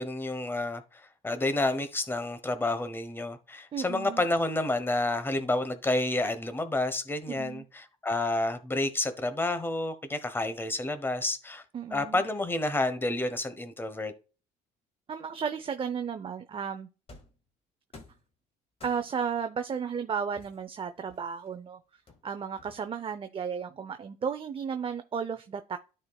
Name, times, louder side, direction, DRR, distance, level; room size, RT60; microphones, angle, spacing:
voice 1, 0.0-11.6 11.9-14.1, left 2 dB, 15° left, 1.0 m, -30 dB
voice 2, 3.7-4.2 7.3-7.6 11.7-12.2 15.1-16.9 18.8-25.8, right 6 dB, 30° right, 0.6 m, -34 dB
sound 1, 17.1-17.4 17.9-18.3 18.8-19.3 20.4-21.5 22.1-23.1, left 2 dB, 35° left, 1.8 m, -52 dB
13.0 x 4.4 x 2.3 m
cardioid pair, 110°, 17 cm